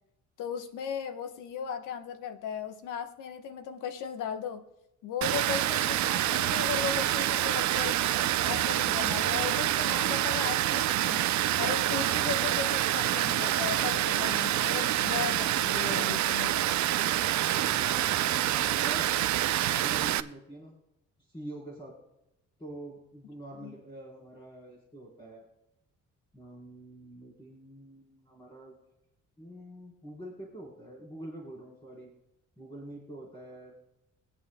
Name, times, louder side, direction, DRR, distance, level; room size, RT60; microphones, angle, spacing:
voice 1, 0.4-4.6 5.0-11.3 11.6-16.8 23.6-23.7, left 7 dB, 85° left, 8 dB, 1.2 m, -36 dB
Water, 5.2-20.2, right 13 dB, 70° right, 0.6 m, -27 dB
voice 2, 17.3-19.1 19.6-20.7 21.2-21.9 22.6-25.5 26.3-28.8 29.4-32.1 32.6-33.7, right 1 dB, 15° left, -5 dB, 4.1 m, -45 dB
24.0 x 8.9 x 2.2 m, 0.90 s
cardioid pair, 90°, 30 cm